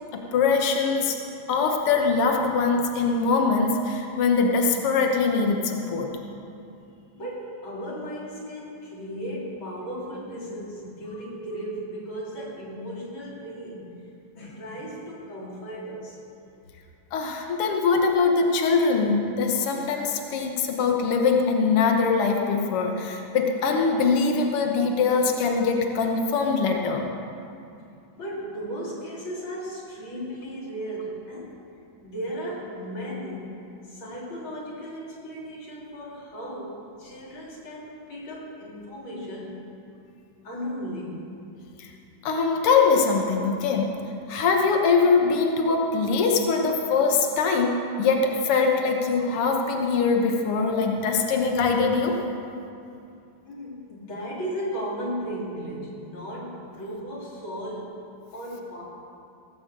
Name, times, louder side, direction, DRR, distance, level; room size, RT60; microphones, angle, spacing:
voice 1, 0.1-1.2 1.5-6.1 17.1-27.1 41.8-41.9 42.2-43.9 44.3-52.2, left 4 dB, 90° left, 2 dB, 1.2 m, -22 dB
voice 2, 7.1-14.1 14.3-16.2 28.2-31.6 32.0-39.7 40.4-41.3 53.4-57.9 58.3-58.8, equal, 35° left, -4 dB, 3.2 m, -35 dB
17.5 x 7.9 x 7.4 m, 2.6 s
omnidirectional pair, 4.2 m